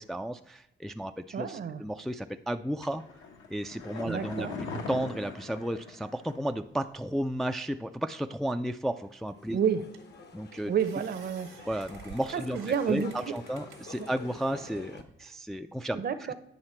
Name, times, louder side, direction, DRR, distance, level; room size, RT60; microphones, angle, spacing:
voice 1, 0.0-3.0 3.5-4.5 4.9-9.6 10.3-10.7 11.7-12.6 12.9-16.0, right 1 dB, ahead, 7 dB, 0.3 m, -33 dB
voice 2, 1.3-1.8 4.0-4.5 9.5-9.9 10.7-11.5 12.3-13.3 15.9-16.3, right 7 dB, 50° right, 11 dB, 0.7 m, -30 dB
sound 1, 2.8-6.5 6.8-6.9, left 4 dB, 80° left, 1.2 m, -40 dB
sound 2, 8.9-15.0, left 5 dB, 55° left, 1.0 m, -49 dB
sound 3, 9.3-9.4 9.9-10.2 10.5-14.1 14.6-15.3, right 9 dB, 85° right, 1.3 m, -52 dB
9.6 x 5.6 x 4.3 m, 0.87 s
cardioid pair, 90°, 20 cm